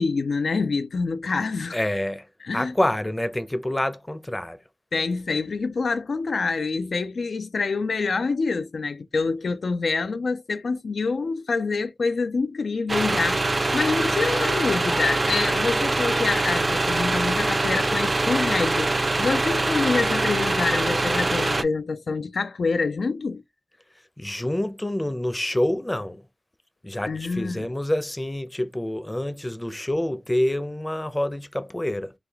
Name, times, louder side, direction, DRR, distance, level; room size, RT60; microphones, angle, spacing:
voice 1, 0.0-1.8 2.4-2.7 4.9-23.4 27.1-27.7, left 4 dB, 85° left, 0.3 m, -26 dB
voice 2, 1.7-2.3 2.5-4.6 24.2-26.2 26.8-32.1, left 1 dB, 20° left, 0.5 m, -27 dB
sound 1, 12.9-21.6, right 2 dB, 40° right, 0.4 m, -23 dB
3.2 x 2.3 x 3.4 m
wide cardioid pair, 75°, 0 cm